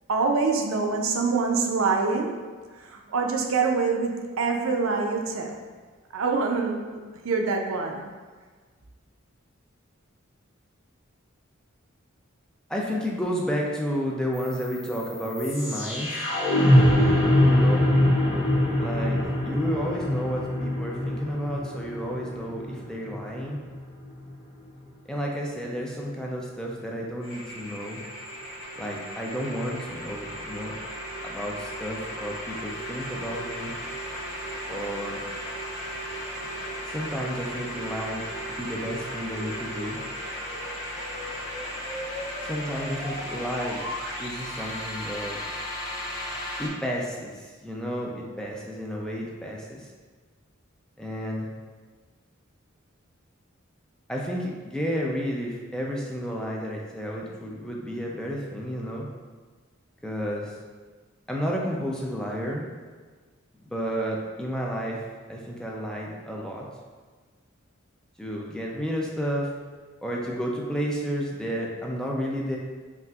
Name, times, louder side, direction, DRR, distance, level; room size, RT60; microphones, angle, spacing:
voice 1, 0.1-2.4 2.8-5.6 6.1-8.1, right 4 dB, 75° right, 2 dB, 0.5 m, -25 dB
voice 2, 12.7-16.3 17.4-17.9 18.8-23.6 25.1-28.0 28.8-30.7 31.2-33.7 34.7-35.3 36.9-38.2 38.5-40.0 42.4-43.8 44.2-45.4 46.6-49.9 51.0-51.5 54.1-59.1 60.0-60.6 61.3-62.7 63.7-65.0 65.3-66.7 68.2-69.5 70.0-72.6, equal, 5° left, -2 dB, 0.4 m, -31 dB
sound 1, 14.4-24.4, left 1 dB, 65° left, 1.1 m, -24 dB
sound 2, 27.2-46.7, equal, 90° left, 0.9 m, -35 dB
5.5 x 2.5 x 2.3 m, 1.4 s
head